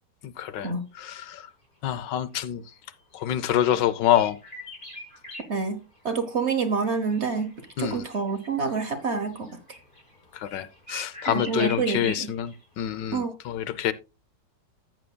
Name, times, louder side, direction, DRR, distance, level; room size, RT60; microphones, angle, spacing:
voice 1, 0.2-0.7 1.0-1.5 1.8-2.6 3.1-4.4 7.8-8.0 10.3-13.9, left 11 dB, 75° left, 1.3 m, -26 dB
sound 1, 3.0-5.4 6.1-12.5 12.9-13.0, left 2 dB, 25° left, 4.5 m, -43 dB
voice 2, 5.5-5.8 6.0-9.5 11.3-12.3 13.1-13.3, right 5 dB, 45° right, 1.1 m, -27 dB
13.5 x 8.7 x 2.2 m
omnidirectional pair, 2.0 m